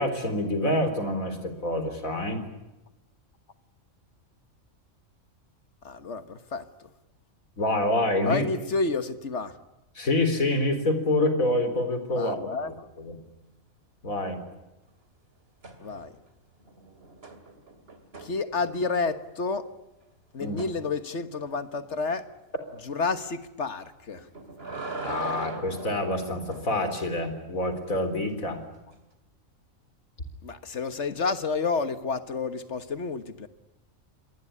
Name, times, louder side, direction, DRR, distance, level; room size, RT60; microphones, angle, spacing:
voice 1, 0.0-2.4 7.6-8.4 9.9-13.2 14.0-14.4 20.4-20.6 25.0-28.6, left 1 dB, 85° left, 9 dB, 4.3 m, -27 dB
voice 2, 5.8-6.6 8.2-9.5 12.1-12.7 15.8-16.1 18.2-19.7 20.3-22.3 22.8-24.3 30.4-33.5, left 4 dB, 60° left, 11 dB, 1.7 m, -30 dB
sound 1, 15.6-16.3 16.6-19.0 20.6-20.8 24.1-26.7 28.9-29.0, right 3 dB, 45° right, 3.0 m, -39 dB
26.0 x 20.5 x 10.0 m, 0.98 s
omnidirectional pair, 1.4 m